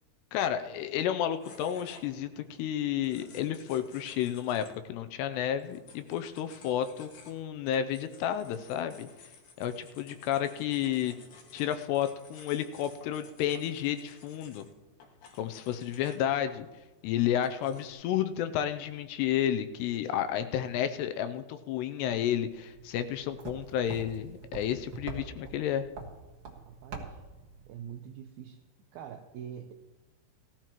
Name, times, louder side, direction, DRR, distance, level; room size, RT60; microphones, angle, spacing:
voice 1, 0.3-9.1 9.6-11.1 11.5-14.7 15.4-16.7 17.0-25.9, left 10 dB, 80° left, 9 dB, 2.6 m, -31 dB
sound 1, 1.3-17.9, left 5 dB, 60° left, 3.3 m, -55 dB
sound 2, 22.5-27.7, right 4 dB, 55° right, 1.5 m, -45 dB
voice 2, 26.7-27.2 27.7-28.6 28.9-29.7, right 9 dB, 85° right, 5 dB, 2.1 m, -44 dB
18.5 x 14.0 x 3.0 m, 1.1 s
omnidirectional pair, 5.1 m